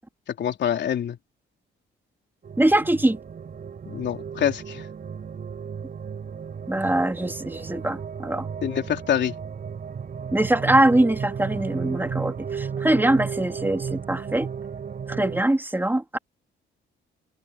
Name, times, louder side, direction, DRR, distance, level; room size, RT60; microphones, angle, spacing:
voice 1, 0.3-1.2 3.9-4.9 8.6-9.3, left 9 dB, 65° left, 3.5 m, -26 dB
sound 1, 2.4-15.4, right 6 dB, 45° right, 7.8 m, -34 dB
voice 2, 2.6-3.2 6.7-8.5 10.3-14.5 15.1-16.2, right 1 dB, 10° right, 3.0 m, -22 dB
cardioid pair, 90°, 20 cm